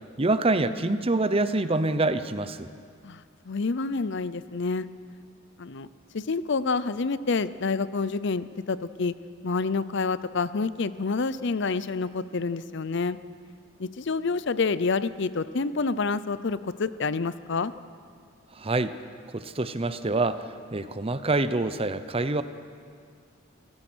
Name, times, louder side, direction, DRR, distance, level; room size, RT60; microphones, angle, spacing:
voice 1, 0.2-2.7 18.6-18.9 19.3-20.4 20.7-22.4, right 2 dB, 30° right, 12 dB, 0.7 m, -26 dB
voice 2, 3.0-4.9 5.6-5.9 6.1-9.1 9.4-13.2 13.8-17.7, left 4 dB, 60° left, 15 dB, 0.6 m, -28 dB
29.0 x 16.0 x 6.3 m, 2.1 s
head